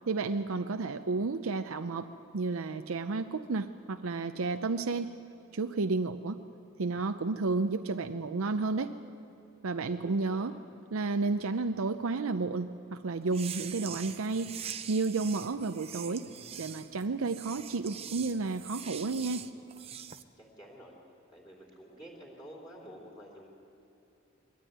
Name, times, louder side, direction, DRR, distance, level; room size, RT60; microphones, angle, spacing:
voice 1, 0.1-2.1 2.3-5.1 5.5-6.4 6.8-9.0 9.6-10.5 10.9-14.5 14.9-16.2 16.6-19.5, right 3 dB, 75° right, 8 dB, 0.6 m, -31 dB
voice 2, 9.8-10.5 20.4-20.9 21.3-23.5, equal, 20° left, -4 dB, 3.3 m, -50 dB
sound 1, 13.3-20.2, right 8 dB, 25° right, 0.5 m, -43 dB
22.0 x 13.5 x 9.4 m, 2.6 s
head